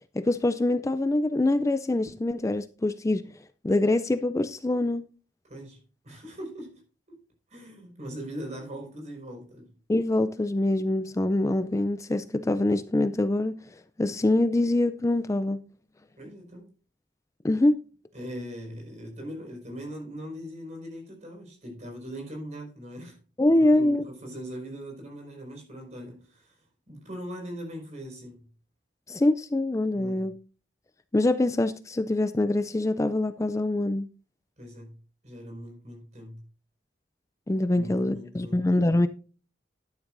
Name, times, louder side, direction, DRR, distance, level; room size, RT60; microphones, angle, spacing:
voice 1, 0.1-3.2 3.6-5.0 9.9-13.6 14.0-15.6 17.4-17.8 23.4-24.0 29.1-30.3 31.1-34.1 37.5-39.1, left 2 dB, 15° left, 0.4 m, -24 dB
voice 2, 5.4-6.8 7.1-7.2 7.5-9.7 16.2-16.7 18.1-23.2 23.7-26.6 26.9-28.4 29.9-30.3 34.6-35.0 35.2-36.4 37.7-38.9, equal, 40° right, 5.1 m, -40 dB
12.0 x 10.0 x 2.6 m
head